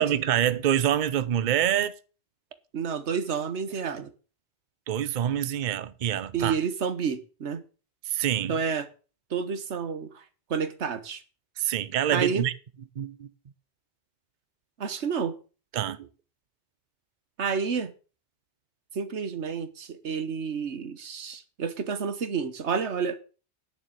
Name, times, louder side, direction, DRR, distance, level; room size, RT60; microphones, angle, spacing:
voice 1, 0.0-1.9 4.9-6.5 8.1-8.6 11.6-12.5 13.0-13.3 15.7-16.1, right 10 dB, 50° right, 0.8 m, -26 dB
voice 2, 2.7-4.1 6.3-7.6 8.5-8.9 9.3-10.2 10.5-11.2 12.1-12.5 14.8-15.3 17.4-17.9 18.9-23.2, right 6 dB, 75° right, 1.4 m, -30 dB
9.7 x 6.9 x 7.4 m
omnidirectional pair, 1.2 m